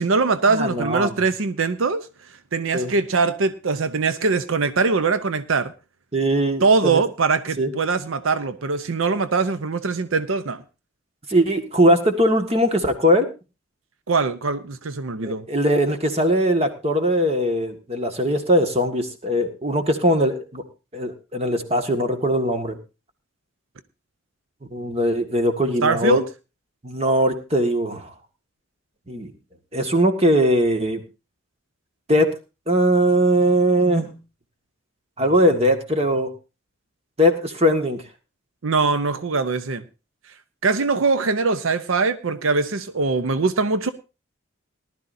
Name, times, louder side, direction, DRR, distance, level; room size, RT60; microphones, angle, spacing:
voice 1, 0.0-2.1 2.5-5.7 6.6-10.6 14.1-15.4 25.8-26.2 38.6-39.8 40.6-43.9, right 4 dB, 80° right, 12 dB, 0.7 m, -22 dB
voice 2, 0.5-1.1 2.7-2.9 6.1-7.0 7.6-7.7 11.3-13.3 15.2-20.6 20.9-22.8 24.7-26.2 26.8-28.1 29.1-29.3 29.7-31.0 32.1-32.3 32.7-34.1 35.2-36.3 37.2-38.0, equal, 30° right, 6 dB, 1.8 m, -20 dB
19.0 x 12.0 x 2.7 m, 0.30 s
head